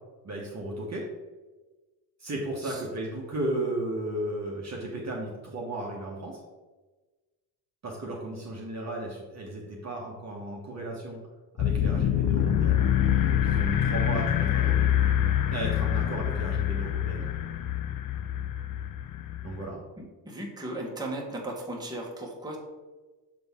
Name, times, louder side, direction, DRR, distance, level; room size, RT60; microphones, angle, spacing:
voice 1, 0.2-1.1 2.2-6.4 7.8-11.2 11.6-12.9 13.3-14.8 15.5-17.3 19.4-19.8, right 1 dB, 35° right, -3 dB, 1.1 m, -34 dB
sound 1, 11.6-19.7, left 10 dB, 45° left, 0.5 m, -26 dB
voice 2, 20.0-22.6, right 1 dB, 10° right, -2 dB, 1.3 m, -36 dB
6.8 x 3.9 x 3.5 m, 1.2 s
cardioid pair, 100°, 47 cm